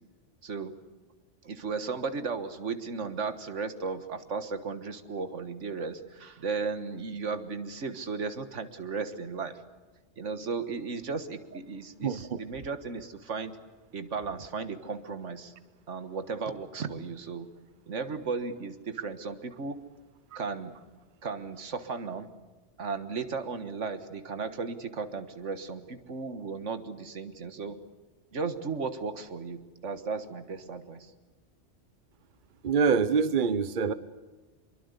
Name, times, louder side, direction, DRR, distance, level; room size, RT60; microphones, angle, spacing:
voice 1, 0.4-0.8 1.4-9.6 10.2-13.6 13.9-15.5 15.9-17.5 17.9-19.8 20.4-20.7 21.2-22.3 22.8-27.8 28.3-31.1, right 4 dB, 85° right, 10 dB, 1.8 m, -35 dB
voice 2, 12.0-12.4 20.3-20.4 32.6-33.9, right 6 dB, 45° right, 13 dB, 1.0 m, -25 dB
26.0 x 22.5 x 8.2 m, 1.3 s
omnidirectional pair, 1.2 m